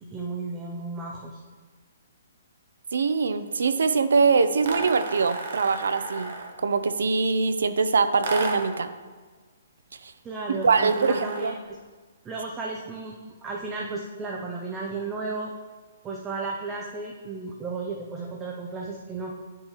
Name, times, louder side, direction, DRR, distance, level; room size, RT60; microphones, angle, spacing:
voice 1, 0.1-1.4 10.2-11.8 12.2-13.2 13.4-15.5 16.0-19.3, right 3 dB, 10° right, -1 dB, 0.4 m, -34 dB
voice 2, 2.9-6.3 6.6-8.9 10.0-10.1 10.5-11.6, right 4 dB, 85° right, 11 dB, 0.5 m, -23 dB
sound 1, 4.6-6.6 8.2-8.8 10.6-11.7, right 3 dB, 50° right, 1.0 m, -33 dB
9.8 x 5.4 x 2.9 m, 1.4 s
hypercardioid pair, 175°, 0 cm